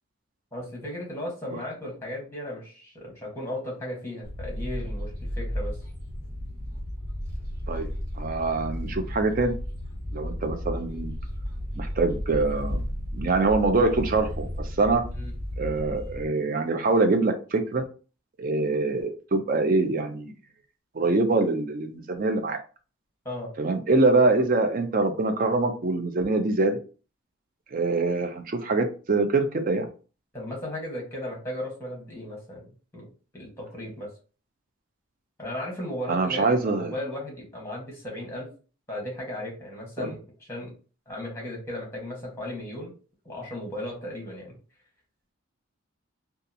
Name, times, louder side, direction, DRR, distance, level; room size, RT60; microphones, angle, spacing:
voice 1, 0.5-5.8 15.1-15.3 23.2-23.5 30.3-33.0 33.3-34.1 35.4-38.5 38.9-40.7 41.1-42.9 43.2-44.6, left 1 dB, 10° left, -2 dB, 1.0 m, -36 dB
sound 1, 4.2-16.3, equal, 75° right, 1.3 m, -33 dB
voice 2, 8.2-9.5 10.1-11.1 11.7-12.8 13.1-15.0 15.6-17.8 18.4-20.3 20.9-22.6 23.6-26.8 27.7-29.9 36.1-36.9 40.0-40.1, right 3 dB, 40° right, 6 dB, 0.4 m, -24 dB
2.7 x 2.4 x 2.5 m, 0.36 s
head